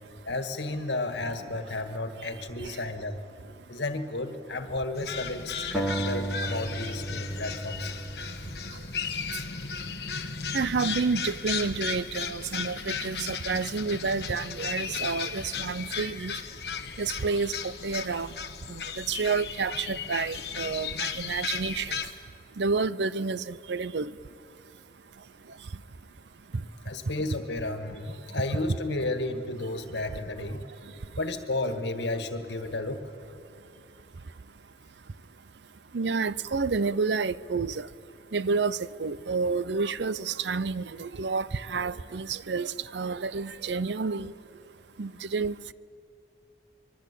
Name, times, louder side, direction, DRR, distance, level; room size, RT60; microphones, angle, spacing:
voice 1, 0.3-3.2 3.7-7.9 26.9-30.6 31.2-33.0, left 2 dB, 85° left, 1.8 m, -32 dB
sound 1, 5.0-22.1, left 6 dB, 65° left, 1.3 m, -35 dB
sound 2, 5.7-9.0, right 1 dB, 5° right, 2.0 m, -34 dB
voice 2, 10.5-16.3 17.0-17.5 17.8-18.3 18.7-21.9 22.6-24.1 35.9-37.8 38.3-44.3 45.0-45.7, right 4 dB, 80° right, 0.6 m, -29 dB
24.5 x 22.5 x 8.4 m
head